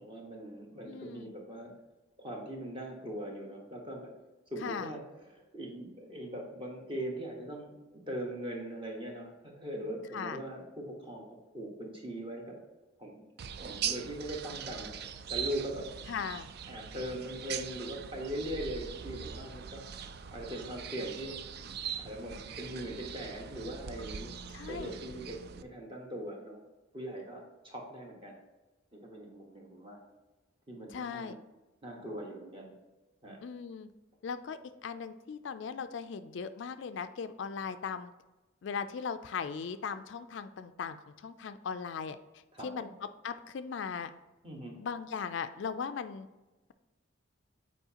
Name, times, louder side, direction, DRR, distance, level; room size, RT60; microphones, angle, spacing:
voice 1, 0.0-1.7 2.2-4.1 4.5-12.6 13.0-13.3 13.6-14.9 15.3-15.9 16.7-19.9 20.3-21.4 22.0-24.4 24.7-26.6 26.9-28.4 28.9-30.0 30.7-31.4 31.8-32.7 33.2-33.4 42.5-42.9 44.4-44.7, right 1 dB, 25° right, 0 dB, 1.3 m, -41 dB
voice 2, 0.8-1.3 4.6-4.9 10.1-10.4 16.1-16.5 24.5-24.9 30.9-31.4 33.4-33.9 34.2-38.1 38.6-42.2 42.6-42.9 43.2-44.1 44.8-46.3, left 6 dB, 60° left, 10 dB, 0.3 m, -38 dB
sound 1, 13.4-25.6, right 8 dB, 50° right, 0.3 m, -41 dB
8.1 x 4.6 x 2.8 m, 1.1 s
head